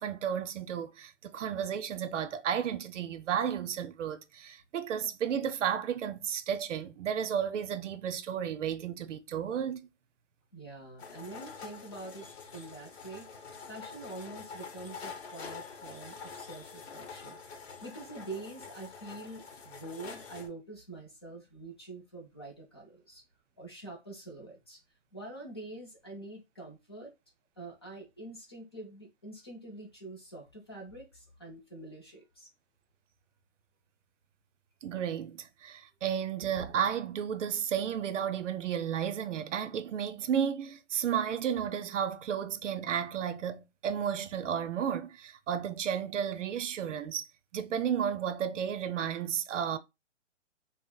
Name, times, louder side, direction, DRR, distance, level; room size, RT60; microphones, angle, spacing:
voice 1, 0.0-9.9 34.8-47.3 47.5-49.8, right 8 dB, 80° right, 0.6 m, -33 dB
voice 2, 10.5-12.3 12.5-13.3 13.7-17.4 17.8-23.2 23.6-24.8 25.1-27.1 27.6-32.5, right 2 dB, 20° left, 0.4 m, -45 dB
sound 1, 11.0-20.5, left 5 dB, 60° left, 0.8 m, -46 dB
3.7 x 2.0 x 2.2 m
hypercardioid pair, 160°, 36 cm